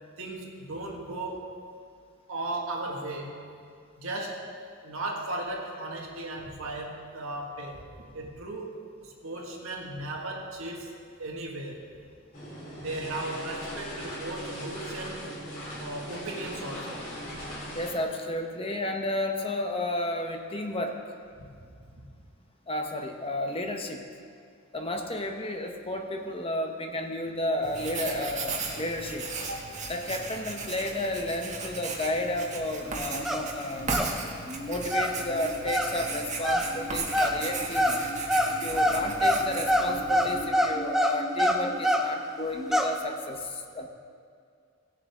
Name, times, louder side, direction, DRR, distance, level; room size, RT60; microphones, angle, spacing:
voice 1, 0.2-1.5 2.3-3.4 4.0-4.4 4.8-7.8 8.1-11.8 12.8-15.3 15.8-17.0 21.6-22.1 29.4-29.7, right 2 dB, 75° right, -1 dB, 1.6 m, -36 dB
sound 1, 12.3-17.9, equal, 45° left, 3.2 m, -39 dB
voice 2, 17.7-21.0 22.7-24.0 24.7-29.3 29.9-33.9 34.6-38.0 38.4-43.9, left 1 dB, 25° left, 4 dB, 0.8 m, -32 dB
Writing, 27.6-40.5, right 3 dB, 35° right, 1.3 m, -36 dB
sound 2, 33.1-33.5 33.8-34.2 34.5-42.1 42.5-43.0, equal, ahead, 0.5 m, -27 dB
17.0 x 7.4 x 3.6 m, 2.2 s
head